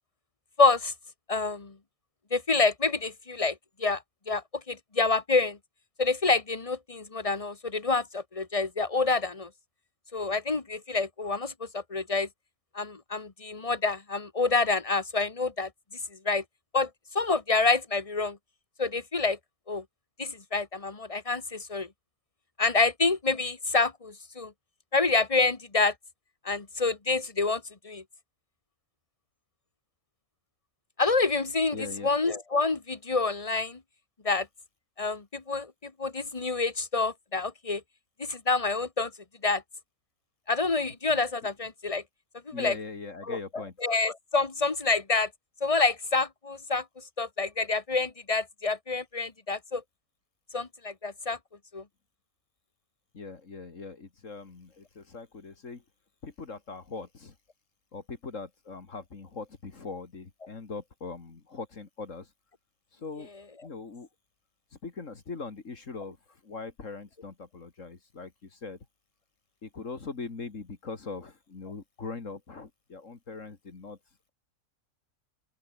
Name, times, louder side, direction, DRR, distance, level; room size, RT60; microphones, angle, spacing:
voice 1, 0.6-0.9 1.3-1.7 2.3-4.4 4.7-5.6 6.0-9.5 10.1-12.3 12.7-15.7 16.2-16.4 16.7-16.9 17.1-18.4 18.8-19.4 19.7-19.8 20.2-21.9 22.6-24.5 24.9-25.9 26.4-28.0 31.0-31.8 32.0-33.8 34.2-34.5 35.0-37.8 38.2-39.1 39.4-39.6 40.5-42.0 42.5-42.7 43.3-45.3 45.6-46.8 47.2-49.8 50.5-51.4 51.7-51.8, left 3 dB, 25° left, 1.4 m, -27 dB
voice 2, 31.7-32.1 41.1-41.2 42.5-43.7 53.1-55.8 56.2-57.3 57.9-62.3 62.9-63.3 63.6-64.1 64.7-66.2 66.4-68.8 69.6-74.0, left 4 dB, 65° left, 2.6 m, -41 dB
open air
omnidirectional pair, 1.5 m